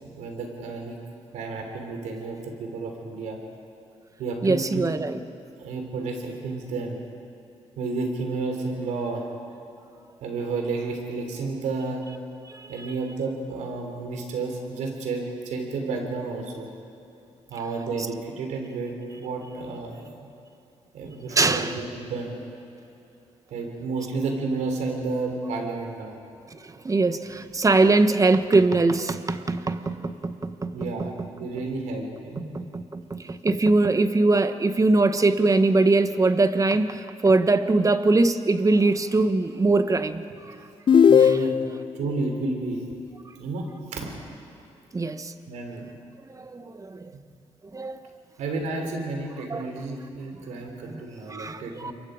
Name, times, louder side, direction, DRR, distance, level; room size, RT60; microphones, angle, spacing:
voice 1, 0.1-1.0 1.3-3.4 4.2-4.8 5.6-7.0 7.8-9.3 10.2-12.0 12.7-16.7 17.5-20.0 20.9-22.4 23.5-26.2 30.7-32.5 41.1-41.6 41.9-42.8 43.4-44.1 45.5-45.9 48.4-51.9, right 3 dB, 90° right, 3 dB, 3.4 m, -31 dB
voice 2, 4.4-5.1 12.5-12.9 21.3-21.7 26.5-31.3 32.4-40.5 41.2-41.4 44.9-45.3 46.3-47.1 47.7-48.0 49.5-49.6 50.9-51.0 51.3-51.9, right 3 dB, 30° right, 10 dB, 1.2 m, -22 dB
sound 1, 40.9-41.9, left 7 dB, 45° left, 0.5 m, -17 dB
28.0 x 22.5 x 5.1 m, 2.7 s
cardioid pair, 75°, 12 cm